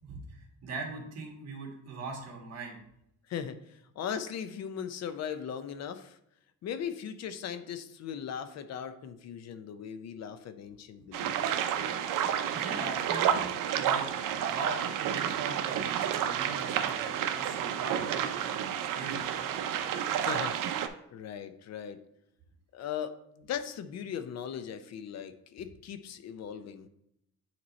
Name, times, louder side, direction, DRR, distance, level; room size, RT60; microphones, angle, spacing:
voice 1, 0.0-2.8 12.5-14.1 14.4-18.5 18.9-19.3, right 3 dB, 55° right, 0 dB, 1.6 m, -41 dB
voice 2, 3.3-6.2 6.6-11.7 20.2-20.6 21.1-22.0 22.7-26.9, left 8 dB, 55° left, 10 dB, 0.5 m, -38 dB
sound 1, 11.1-20.9, right 9 dB, 80° right, 0.6 m, -30 dB
8.6 x 3.0 x 4.0 m, 0.76 s
cardioid pair, 160°, 31 cm